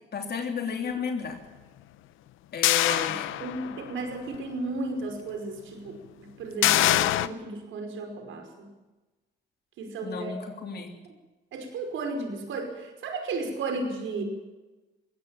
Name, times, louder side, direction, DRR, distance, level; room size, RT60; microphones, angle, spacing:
voice 1, 0.1-1.4 2.5-3.3 10.0-11.0, left 6 dB, 55° left, 3 dB, 3.3 m, -32 dB
sound 1, 2.6-3.9 4.3-4.4 6.6-7.3, left 14 dB, 90° left, 0.8 m, -23 dB
voice 2, 2.8-8.7 9.8-10.4 11.5-14.2, right 3 dB, 80° right, 5 dB, 5.2 m, -34 dB
21.5 x 18.0 x 7.3 m, 1.1 s
cardioid pair, 90°, 20 cm